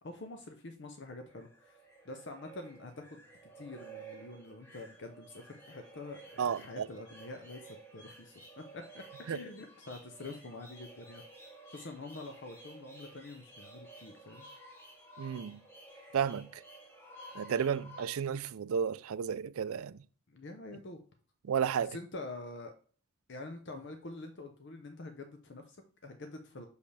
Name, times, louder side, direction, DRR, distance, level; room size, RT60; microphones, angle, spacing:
voice 1, 0.0-3.3 3.5-11.2 11.7-14.5 20.3-21.0 21.8-22.7 23.3-26.7, left 2 dB, 55° left, 0.7 m, -46 dB
sound 1, 1.1-18.0, right 2 dB, 10° left, 1.6 m, -53 dB
voice 2, 6.4-6.9 9.3-9.4 15.2-15.6 16.1-16.6 17.4-20.0 21.4-22.0, right 7 dB, 75° right, 0.4 m, -32 dB
6.5 x 5.4 x 3.3 m
head